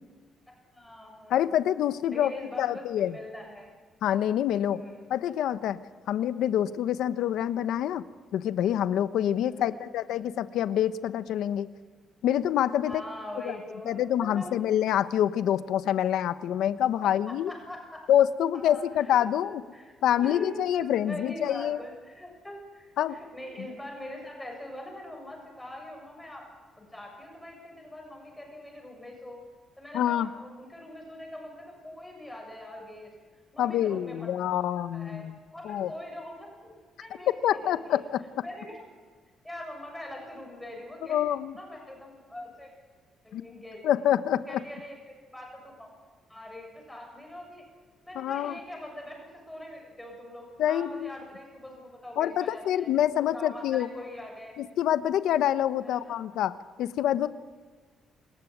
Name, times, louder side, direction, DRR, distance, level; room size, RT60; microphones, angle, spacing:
voice 1, 0.7-1.5 2.0-3.7 4.7-5.0 9.5-9.8 12.9-13.9 14.3-14.5 17.0-18.0 18.5-20.0 20.2-26.5 26.8-29.4 29.8-33.1 33.5-34.4 34.9-35.2 35.5-38.0 38.4-38.8 39.4-42.7 43.2-43.8 44.5-45.9 46.3-47.6 48.0-52.9 53.2-54.6 55.8-56.1, left 1 dB, 5° left, 1 dB, 7.2 m, -43 dB
voice 2, 1.3-2.3 2.6-3.2 4.0-4.8 5.1-5.8 6.1-8.0 8.3-11.7 12.2-13.0 13.4-13.6 13.8-17.5 18.1-19.6 20.0-21.8 23.0-23.2 29.9-30.3 33.6-35.4 35.6-35.9 37.4-38.2 41.1-41.6 43.3-43.4 43.8-44.4 48.1-48.5 50.6-51.1 52.2-53.9 54.6-57.3, left 11 dB, 85° left, 13 dB, 1.0 m, -26 dB
27.5 x 15.5 x 9.4 m, 1.5 s
cardioid pair, 140°, 0 cm